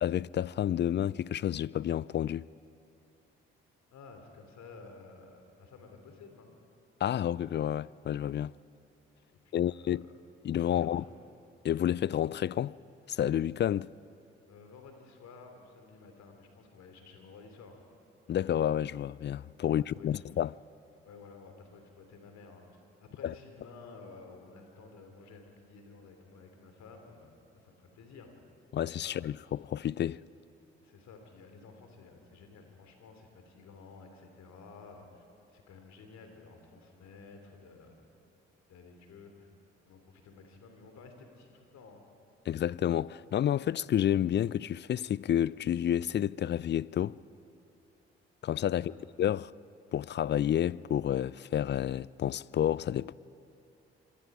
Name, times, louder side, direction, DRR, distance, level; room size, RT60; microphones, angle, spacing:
voice 1, 0.0-2.5 7.0-8.5 9.5-10.0 10.4-11.0 11.6-12.7 13.1-13.9 18.3-20.5 23.2-23.3 28.7-30.2 42.5-47.2 48.4-49.5 49.9-53.1, left 10 dB, 40° left, 0.4 m, -30 dB
voice 2, 3.9-6.5 9.4-10.1 10.7-11.1 14.5-17.8 19.8-20.3 21.0-28.3 29.0-29.4 30.8-37.9 38.3-38.4 38.7-39.5 39.8-42.0 48.7-49.1, left 4 dB, 65° left, 3.0 m, -53 dB
25.5 x 23.5 x 4.9 m
hypercardioid pair, 40°, 30 cm